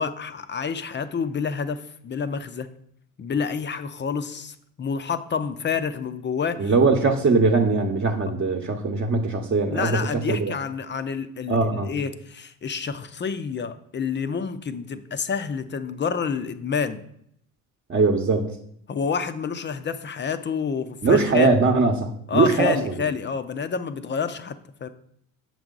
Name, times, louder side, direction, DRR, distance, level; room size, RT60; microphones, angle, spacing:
voice 1, 0.0-2.7 3.2-6.7 9.7-17.0 18.9-21.5 22.3-24.9, left 6 dB, 25° left, 11 dB, 0.6 m, -28 dB
voice 2, 6.6-9.9 10.3-10.5 11.5-11.9 17.9-18.4 21.0-23.0, right 3 dB, 30° right, 2 dB, 1.0 m, -21 dB
7.0 x 4.8 x 3.9 m, 0.71 s
hypercardioid pair, 70°, 40 cm